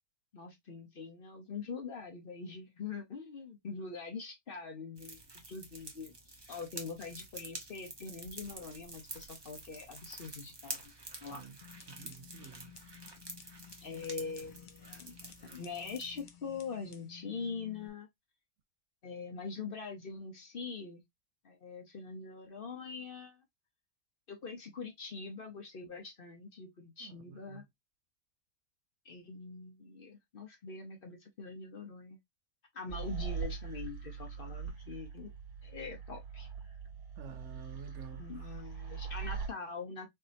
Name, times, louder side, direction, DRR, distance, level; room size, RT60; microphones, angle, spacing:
voice 1, 0.3-6.1 6.5-10.9 11.2-11.4 13.8-18.1 19.0-21.0 21.4-23.4 24.3-27.6 29.0-32.2 32.7-35.3 35.6-36.5 38.1-40.1, left 4 dB, 45° left, 0.9 m, -43 dB
sound 1, 5.0-16.2, right 2 dB, 25° right, 0.7 m, -48 dB
sound 2, 11.6-17.9, left 9 dB, 75° left, 0.4 m, -55 dB
voice 2, 11.9-12.7 27.0-27.7 37.2-38.3, right 6 dB, 65° right, 0.8 m, -50 dB
sound 3, 32.9-39.5, right 6 dB, 40° right, 1.4 m, -41 dB
4.4 x 2.8 x 2.6 m
omnidirectional pair, 1.6 m